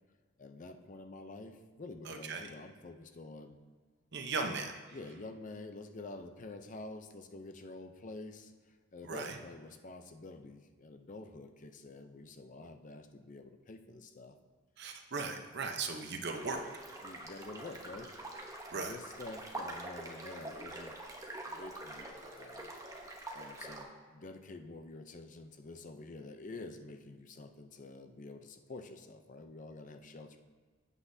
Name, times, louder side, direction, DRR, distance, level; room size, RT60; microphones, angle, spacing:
voice 1, 0.4-3.6 4.4-4.6 4.9-14.4 15.2-15.4 17.0-21.0 21.4-22.7 23.3-30.4, left 2 dB, 40° left, 7 dB, 0.6 m, -48 dB
voice 2, 2.1-2.4 4.1-4.7 9.0-9.4 14.8-16.6 18.7-18.9, right 4 dB, 55° right, 4 dB, 0.8 m, -37 dB
sound 1, 16.3-23.8, right 1 dB, 15° right, 0.9 m, -45 dB
11.5 x 8.3 x 2.7 m, 1.5 s
head